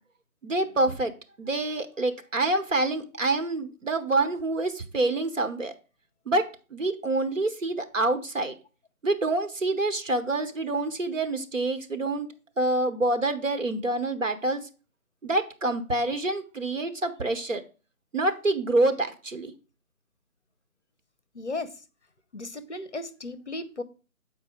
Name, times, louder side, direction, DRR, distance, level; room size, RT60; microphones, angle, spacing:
voice 1, 0.4-1.1 1.4-5.7 6.3-8.5 9.0-12.3 12.6-14.7 15.2-17.6 18.1-19.5, right 2 dB, 60° right, 7 dB, 1.2 m, -27 dB
voice 2, 21.3-21.7 22.3-23.8, left 2 dB, 50° left, 12 dB, 0.8 m, -35 dB
7.2 x 4.6 x 5.0 m, 0.35 s
figure-of-eight pair, 165°, 43 cm